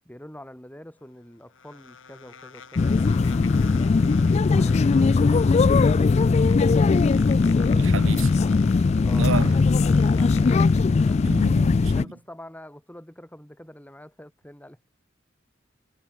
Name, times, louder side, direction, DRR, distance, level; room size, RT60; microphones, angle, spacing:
voice 1, 0.0-5.6 7.9-8.7 9.0-11.4 11.9-14.9, left 1 dB, 10° left, 6.2 m, -46 dB
sound 1, 1.0-11.5, left 6 dB, 75° left, 2.8 m, -46 dB
sound 2, 2.8-12.0, left 4 dB, 35° left, 0.3 m, -19 dB
voice 2, 7.7-8.3 9.2-9.5 11.2-12.1, right 4 dB, 90° right, 0.8 m, -30 dB
head